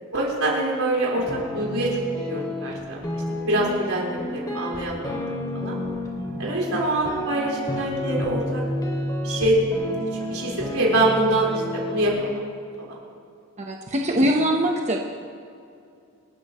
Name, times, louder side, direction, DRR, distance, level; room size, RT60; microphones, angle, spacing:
voice 1, 0.1-1.2 1.5-1.9 2.3-5.2 5.5-5.8 6.4-8.6 9.2-9.6 10.3-12.3, right 1 dB, 80° right, -4 dB, 4.5 m, -25 dB
sound 1, 1.2-2.8 3.0-6.8 7.1-9.4 9.7-12.1, left 1 dB, 20° left, 2.6 m, -30 dB
voice 2, 6.4-6.8 13.6-15.0, equal, 35° right, 1 dB, 1.1 m, -23 dB
27.5 x 13.0 x 3.1 m, 2.4 s
head